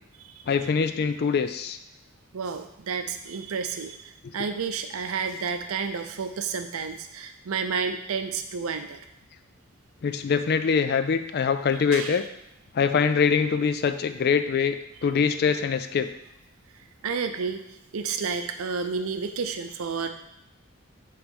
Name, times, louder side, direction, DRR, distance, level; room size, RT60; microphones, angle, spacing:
voice 1, 0.5-1.8 10.0-12.2 12.7-14.8 15.0-16.1, left 6 dB, 50° left, 10 dB, 0.4 m, -23 dB
voice 2, 2.3-9.0 11.9-12.2 17.0-17.7 17.9-20.1, right 5 dB, 85° right, 7 dB, 0.6 m, -31 dB
5.9 x 3.3 x 5.4 m, 0.82 s
head